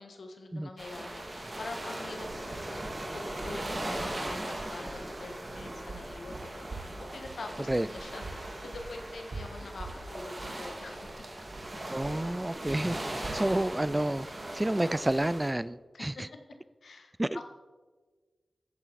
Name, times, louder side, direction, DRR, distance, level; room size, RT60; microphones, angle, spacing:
voice 1, 0.0-2.9 3.1-6.8 7.1-11.1 15.9-16.1 16.8-17.5, left 3 dB, 85° left, 4 dB, 1.5 m, -45 dB
sound 1, 0.8-15.5, right 1 dB, 35° right, 2.2 m, -39 dB
sound 2, 2.0-15.1, right 3 dB, 55° right, 1.3 m, -46 dB
voice 2, 11.9-14.3 14.5-16.3 17.2-17.4, right 1 dB, 20° right, 18 dB, 0.3 m, -30 dB
13.5 x 9.0 x 4.1 m, 1.4 s
wide cardioid pair, 60°, 0 cm